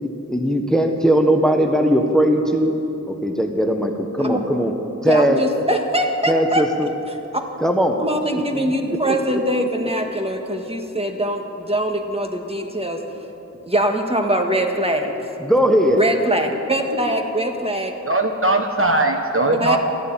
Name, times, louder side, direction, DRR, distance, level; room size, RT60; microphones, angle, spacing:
voice 1, 0.0-2.7 3.1-4.7 5.0-5.4 6.3-6.9 7.6-8.0 8.5-9.4 15.4-16.0, equal, ahead, 4 dB, 1.1 m, -19 dB
voice 2, 5.0-6.6 7.1-7.2 8.0-13.0 13.6-15.1 15.9-17.9 19.5-19.8, right 1 dB, 20° right, 3 dB, 1.7 m, -22 dB
voice 3, 18.1-19.8, right 2 dB, 45° right, 4 dB, 1.1 m, -19 dB
13.5 x 11.5 x 9.0 m, 3.0 s
wide cardioid pair, 40°, 31 cm